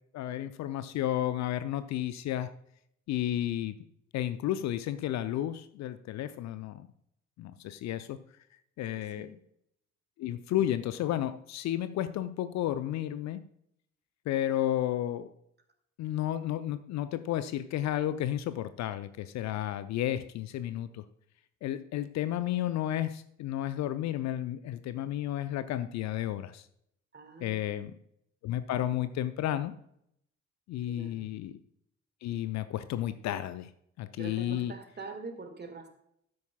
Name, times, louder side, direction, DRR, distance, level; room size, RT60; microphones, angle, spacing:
voice 1, 0.1-2.5 3.1-3.8 4.1-6.9 7.4-8.2 8.8-9.3 10.2-13.4 14.3-15.3 16.0-21.0 21.6-26.6 27.4-27.9 28.4-29.7 30.7-31.5 32.2-33.7 34.0-34.7, left 12 dB, 50° left, 13 dB, 0.6 m, -32 dB
voice 2, 8.9-9.4 27.1-27.8 30.9-31.3 34.2-35.9, right 3 dB, 30° right, 8 dB, 1.8 m, -44 dB
12.5 x 9.4 x 2.3 m, 0.72 s
figure-of-eight pair, 45°, 37 cm